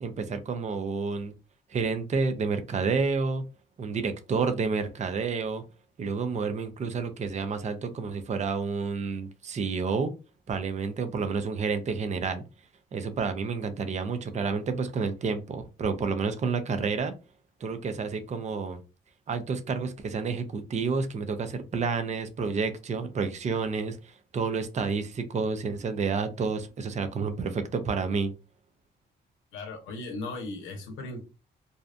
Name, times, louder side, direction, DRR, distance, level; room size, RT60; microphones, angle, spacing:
voice 1, 0.0-1.3 1.7-3.4 3.8-5.6 6.0-10.1 10.5-12.4 12.9-17.1 17.6-18.8 19.3-28.3, right 4 dB, 35° right, 0.5 m, -30 dB
voice 2, 29.5-31.2, left 2 dB, 90° left, 0.6 m, -37 dB
2.7 x 2.1 x 2.4 m
cardioid pair, 80°, 20 cm